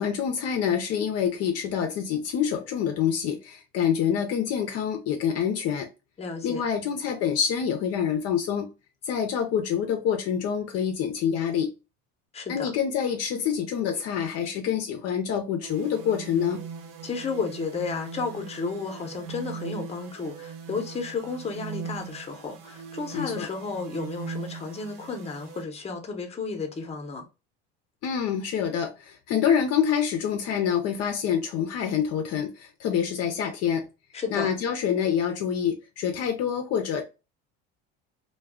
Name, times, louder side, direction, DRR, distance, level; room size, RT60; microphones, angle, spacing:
voice 1, 0.0-5.9 6.4-8.7 9.1-11.7 12.5-16.6 23.1-23.5 28.0-33.8 34.3-37.0, left 8 dB, 55° left, 0.6 m, -26 dB
voice 2, 6.2-6.7 12.3-12.7 17.0-27.2 34.1-34.5, left 4 dB, 20° left, 0.8 m, -32 dB
sound 1, 15.6-25.6, right 6 dB, 65° right, 0.8 m, -40 dB
2.2 x 2.2 x 3.4 m
supercardioid pair, 100°, 30 cm